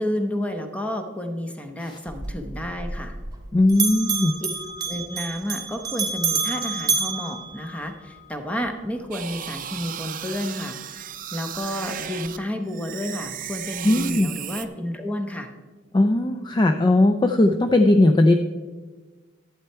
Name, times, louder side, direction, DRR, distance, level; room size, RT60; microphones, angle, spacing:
voice 1, 0.0-3.2 4.9-10.8 11.3-15.5, left 1 dB, 5° left, 5 dB, 0.9 m, -30 dB
Bell, 2.1-3.4 3.7-8.2, right 5 dB, 20° right, 1.5 m, -28 dB
voice 2, 3.5-4.3 13.8-14.3 15.9-18.3, left 2 dB, 25° left, 7 dB, 0.4 m, -18 dB
sound 1, 9.1-12.4 12.7-14.7, right 10 dB, 45° right, 0.5 m, -35 dB
11.5 x 7.9 x 4.5 m, 1.3 s
head